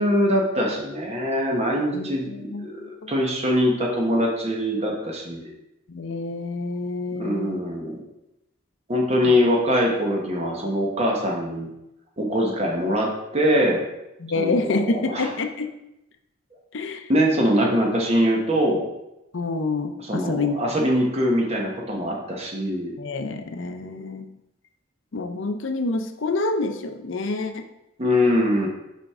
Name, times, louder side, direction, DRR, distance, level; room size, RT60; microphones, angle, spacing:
voice 1, 0.0-2.3 2.6-5.5 7.2-8.0 8.9-11.7 12.2-13.8 14.3-15.3 17.1-18.9 20.0-22.9 28.0-28.7, equal, 30° right, -1 dB, 1.1 m, -23 dB
voice 2, 1.9-3.1 5.9-7.6 9.2-9.3 14.2-15.7 16.7-17.0 19.3-20.6 23.0-24.3 25.1-27.7, left 3 dB, 65° left, 7 dB, 0.6 m, -27 dB
5.6 x 5.0 x 3.6 m, 0.89 s
head